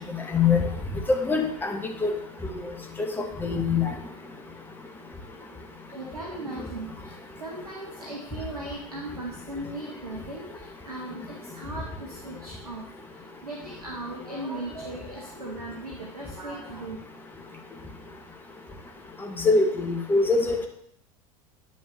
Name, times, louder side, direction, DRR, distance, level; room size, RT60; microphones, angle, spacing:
voice 1, 0.3-0.6 1.2-2.1 3.4-3.9 19.4-20.6, left 4 dB, 10° left, 3 dB, 1.1 m, -23 dB
voice 2, 5.9-17.0, right 2 dB, 85° right, -2 dB, 1.2 m, -38 dB
9.1 x 6.3 x 3.1 m, 0.70 s
figure-of-eight pair, 80°, 19 cm